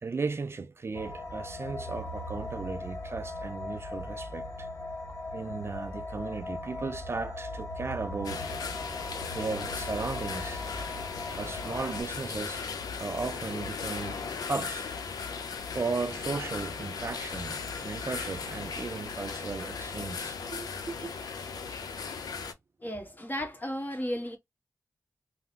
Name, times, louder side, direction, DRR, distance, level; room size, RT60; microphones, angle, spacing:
voice 1, 0.0-4.7 5.3-8.5 9.3-10.6 11.4-12.7 13.0-14.9 15.7-21.1, right 4 dB, 40° right, 0.3 m, -36 dB
sound 1, 0.9-12.0, left 2 dB, 45° left, 1.7 m, -39 dB
sound 2, 8.2-22.5, left 5 dB, 85° left, 0.6 m, -37 dB
voice 2, 22.8-24.4, equal, 30° left, 1.2 m, -34 dB
3.7 x 2.0 x 2.7 m
cardioid pair, 55°, 6 cm